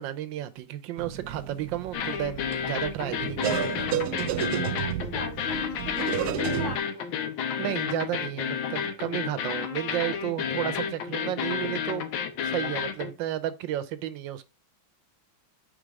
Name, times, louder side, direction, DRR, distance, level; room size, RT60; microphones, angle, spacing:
voice 1, 0.0-3.9 7.6-12.1 12.4-14.4, right 12 dB, 75° right, 1.3 m, -32 dB
sound 1, 1.0-6.8, right 11 dB, 90° right, 0.8 m, -32 dB
sound 2, 1.9-13.1, left 7 dB, 80° left, 1.6 m, -31 dB
voice 2, 4.8-7.1, left 3 dB, 40° left, 1.9 m, -36 dB
5.1 x 4.0 x 4.7 m
omnidirectional pair, 2.2 m